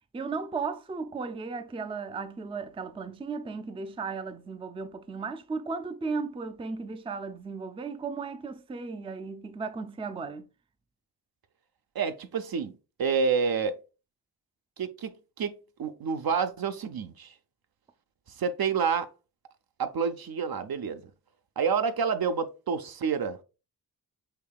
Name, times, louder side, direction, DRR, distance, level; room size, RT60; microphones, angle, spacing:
voice 1, 0.1-10.5, right 4 dB, 15° right, 0.4 m, -35 dB
voice 2, 11.9-12.7 13.0-13.7 14.8-17.3 18.4-19.1 19.8-21.0 21.6-23.4, right 6 dB, 55° right, 0.6 m, -28 dB
6.7 x 2.8 x 2.3 m
cardioid pair, 50°, 43 cm